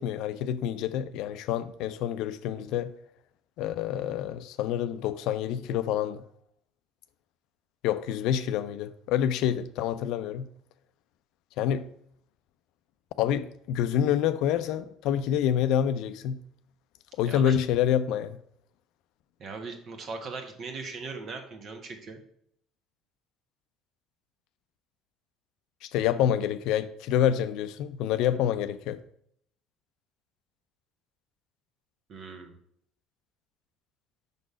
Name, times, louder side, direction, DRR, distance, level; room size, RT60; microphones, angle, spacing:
voice 1, 0.0-2.9 3.6-6.2 7.8-10.5 11.6-11.9 13.2-16.4 17.2-18.4 25.8-29.0, left 10 dB, 70° left, 0.4 m, -27 dB
voice 2, 19.4-22.2 32.1-32.6, right 4 dB, 50° right, 1.3 m, -39 dB
5.4 x 3.9 x 4.9 m
supercardioid pair, 75°, 0 cm